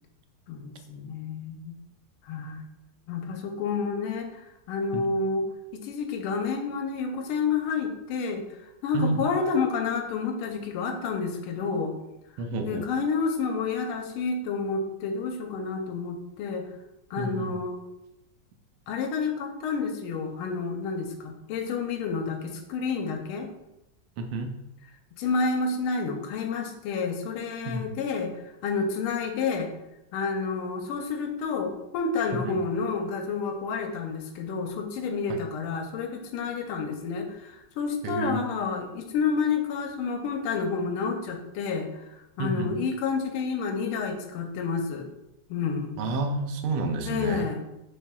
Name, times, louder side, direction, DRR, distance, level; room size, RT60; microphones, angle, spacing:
voice 1, 0.5-1.7 2.2-2.6 3.1-4.3 4.7-5.4 5.7-8.4 8.8-11.9 12.6-16.7 17.1-17.8 18.9-23.5 25.2-28.3 28.6-29.7 30.1-42.0 42.4-45.1 45.5-46.0 47.1-47.6, left 5 dB, 85° left, 4 dB, 1.5 m, -29 dB
voice 2, 12.4-12.9 17.2-17.5 24.2-24.6 27.6-27.9 32.4-32.6 35.3-35.4 38.0-38.4 42.4-42.7 46.0-47.5, right 3 dB, 90° right, 5 dB, 1.5 m, -30 dB
6.4 x 3.1 x 2.2 m, 0.93 s
omnidirectional pair, 2.3 m